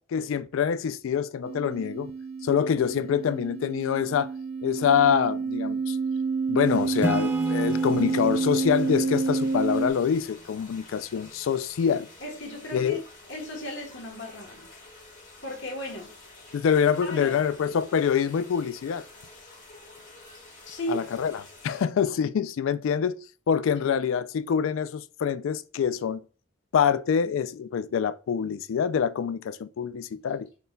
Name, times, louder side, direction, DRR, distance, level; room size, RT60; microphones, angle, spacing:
voice 1, 0.1-2.1 2.4-4.3 4.6-6.0 6.5-12.1 12.7-13.0 16.5-19.0 20.9-23.2 23.5-26.2 26.7-30.5, left 7 dB, 80° left, 0.3 m, -25 dB
sound 1, 1.4-9.9, right 4 dB, 85° right, 0.5 m, -29 dB
sound 2, 6.6-21.8, left 2 dB, 40° left, 1.7 m, -49 dB
Acoustic guitar / Strum, 7.0-10.6, equal, 10° right, 0.3 m, -35 dB
voice 2, 12.2-13.0 13.3-14.7 15.4-16.4 17.0-17.5 20.6-21.1 23.8-24.0, equal, 60° left, 1.2 m, -36 dB
5.2 x 4.3 x 2.2 m
head